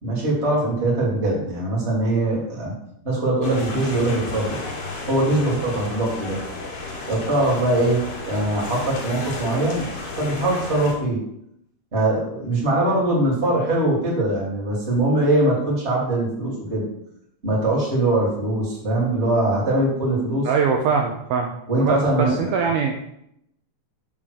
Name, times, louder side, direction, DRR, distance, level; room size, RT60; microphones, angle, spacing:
voice 1, 0.0-2.7 3.0-4.6 5.1-6.4 7.1-9.9 10.1-11.2 11.9-16.8 17.4-20.5 21.7-22.5, right 1 dB, 20° right, -5 dB, 2.1 m, -22 dB
sound 1, 3.4-10.9, left 3 dB, 55° left, 2.6 m, -32 dB
voice 2, 20.5-21.5 21.8-23.0, right 6 dB, 85° right, 2 dB, 2.2 m, -22 dB
7.3 x 3.7 x 6.5 m, 0.76 s
omnidirectional pair, 5.0 m